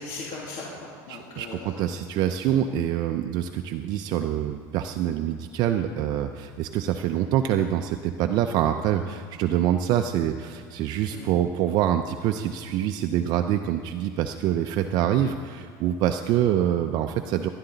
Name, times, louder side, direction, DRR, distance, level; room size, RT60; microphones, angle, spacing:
voice 1, 0.0-2.0 11.1-11.3, left 3 dB, 60° left, -4 dB, 2.5 m, -38 dB
voice 2, 1.1-17.5, right 10 dB, 50° right, 7 dB, 0.5 m, -25 dB
17.0 x 11.0 x 3.9 m, 2.2 s
supercardioid pair, 130°, 9 cm